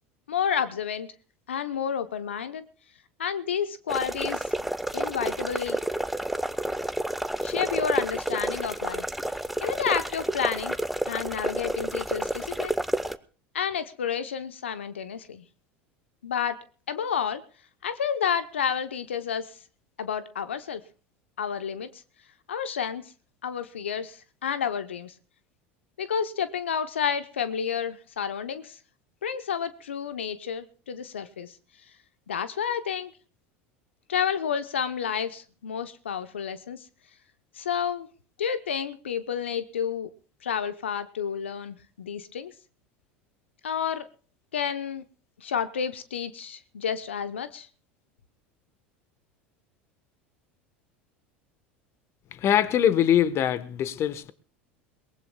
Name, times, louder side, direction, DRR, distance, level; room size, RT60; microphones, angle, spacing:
voice 1, 0.3-1.1 1.5-2.6 3.2-4.6 4.9-5.8 7.4-9.0 9.6-10.8 11.1-12.7 13.5-15.4 16.2-16.6 16.9-17.4 17.8-19.6 20.0-20.8 21.4-22.0 22.5-23.0 23.4-25.1 26.0-28.8 29.2-31.6 32.3-33.1 34.1-36.8 37.5-38.1 38.4-40.1 40.4-42.5 43.6-44.0 44.5-45.0 45.4-47.7, left 7 dB, 85° left, 0.7 m, -30 dB
sound 1, 3.9-13.2, right 1 dB, ahead, 0.8 m, -30 dB
voice 2, 52.3-54.3, left 10 dB, 45° left, 1.0 m, -23 dB
22.5 x 19.0 x 2.2 m
hypercardioid pair, 80°, 6 cm